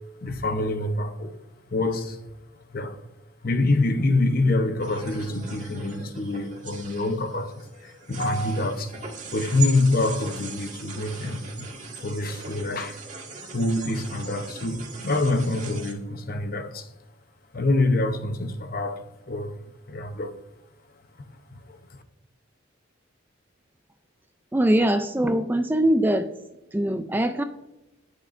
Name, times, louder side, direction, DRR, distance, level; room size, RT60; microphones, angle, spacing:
voice 1, 0.2-1.4 1.7-2.2 2.7-3.0 3.4-9.0 9.3-11.7 11.9-13.0 13.5-16.9 17.5-19.6 19.9-20.4 21.5-22.0, left 2 dB, 45° left, 0.7 m, -26 dB
sound 1, 4.8-15.9, right 4 dB, 35° right, 1.9 m, -39 dB
voice 2, 24.5-26.3 26.7-27.4, right 1 dB, 10° right, 0.3 m, -22 dB
18.5 x 6.6 x 2.5 m
head